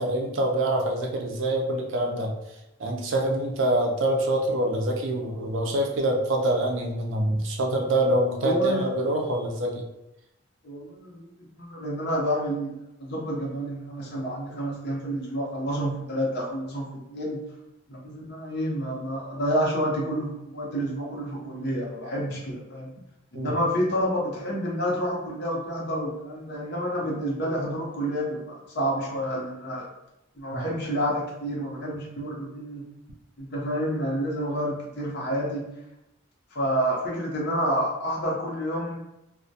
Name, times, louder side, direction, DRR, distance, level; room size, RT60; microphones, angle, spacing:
voice 1, 0.0-2.4 2.8-9.9 23.3-23.5 30.5-30.7, right 1 dB, 65° right, 1 dB, 0.4 m, -25 dB
voice 2, 8.4-8.9 10.6-12.7 13.0-17.4 17.9-22.9 23.3-29.9 30.4-32.8 33.4-35.7 36.5-39.0, equal, 55° left, -3 dB, 0.7 m, -29 dB
2.2 x 2.1 x 2.7 m, 0.90 s
head